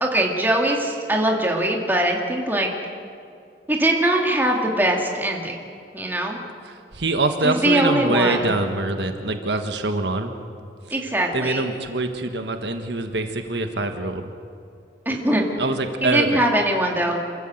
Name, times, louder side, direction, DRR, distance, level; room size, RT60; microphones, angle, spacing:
voice 1, 0.0-2.7 3.7-5.6 5.9-6.4 7.4-8.5 10.9-11.7 15.1-15.4 16.0-17.2, right 1 dB, 10° right, 0 dB, 2.3 m, -21 dB
voice 2, 6.9-10.3 11.3-14.2 15.6-16.4, right 2 dB, 75° right, 6 dB, 1.4 m, -24 dB
27.0 x 15.0 x 7.9 m, 2.4 s
head